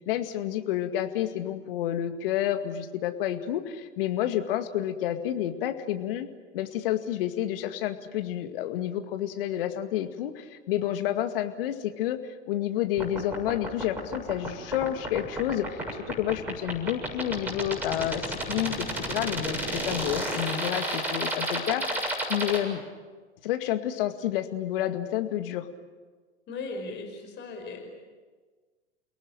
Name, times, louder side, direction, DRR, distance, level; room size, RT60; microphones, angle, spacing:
voice 1, 0.1-6.3 6.5-12.2 12.5-22.0 22.3-22.8 23.4-25.7, left 12 dB, 55° left, 8 dB, 2.2 m, -29 dB
sound 1, 13.0-22.6, right 1 dB, 5° right, 7.0 m, -31 dB
voice 2, 26.5-27.9, left 3 dB, 30° left, 4 dB, 5.3 m, -37 dB
29.5 x 18.5 x 9.0 m, 1.4 s
figure-of-eight pair, 100°, 34 cm